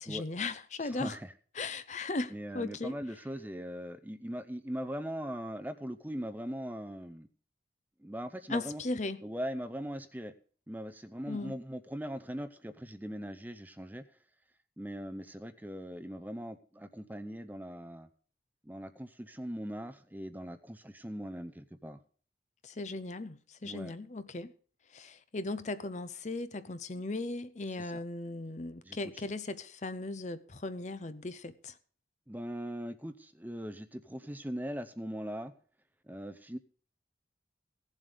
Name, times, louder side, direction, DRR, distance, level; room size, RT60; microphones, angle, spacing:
voice 1, 0.0-1.2 1.6-3.0 8.5-9.2 11.3-11.6 22.6-24.5 24.9-31.8, left 2 dB, 40° left, 0.7 m, -37 dB
voice 2, 0.8-1.3 2.3-7.3 8.0-8.8 9.2-10.3 10.7-14.0 14.8-18.1 18.6-22.0 23.6-23.9 27.7-28.0 28.8-29.0 32.3-35.5 36.0-36.6, equal, 10° right, 0.6 m, -40 dB
16.5 x 7.4 x 5.1 m
head